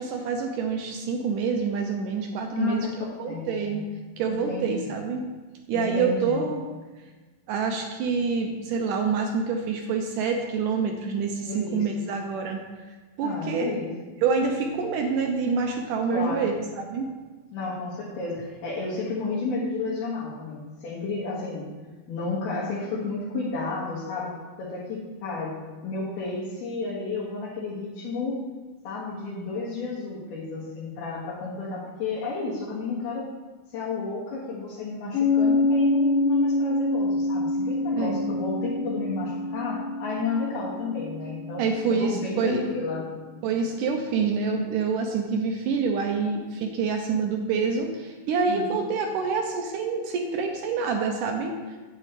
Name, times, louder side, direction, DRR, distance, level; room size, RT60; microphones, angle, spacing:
voice 1, 0.0-3.8 4.2-5.2 5.7-6.6 7.5-12.8 13.2-13.8 14.2-17.1 38.0-38.2 41.6-42.6 43.4-51.6, right 5 dB, 75° right, 3 dB, 2.0 m, -27 dB
voice 2, 2.5-3.8 4.3-4.9 5.7-6.5 11.4-12.1 13.2-13.9 16.1-16.4 17.5-21.6 22.1-24.3 24.6-25.5 25.8-28.4 28.9-33.3 33.7-41.6 41.9-43.1 48.5-48.7, left 3 dB, 85° left, -8 dB, 3.6 m, -32 dB
Piano, 35.1-42.4, left 2 dB, 60° left, 1.6 m, -26 dB
9.4 x 9.0 x 3.3 m, 1.3 s
omnidirectional pair, 4.4 m